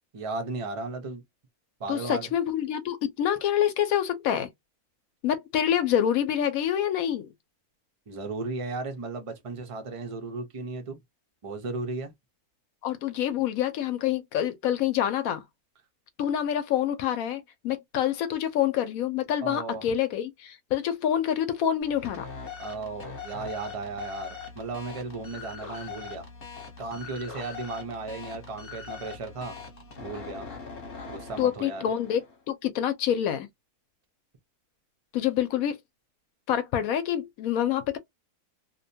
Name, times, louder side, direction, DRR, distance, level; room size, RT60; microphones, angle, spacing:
voice 1, 0.1-1.2 1.8-2.3 8.1-11.0 11.4-12.1 19.4-19.8 22.6-26.3 26.8-29.6 30.0-30.5 31.1-31.8, right 3 dB, 50° right, 0.4 m, -35 dB
voice 2, 1.9-4.5 5.2-7.3 12.8-15.4 16.2-22.3 31.4-32.2 32.5-33.5 35.1-35.8 36.5-38.0, left 10 dB, 75° left, 1.0 m, -26 dB
sound 1, 21.8-32.4, left 5 dB, 45° left, 1.0 m, -42 dB
2.7 x 2.2 x 2.6 m
omnidirectional pair, 1.6 m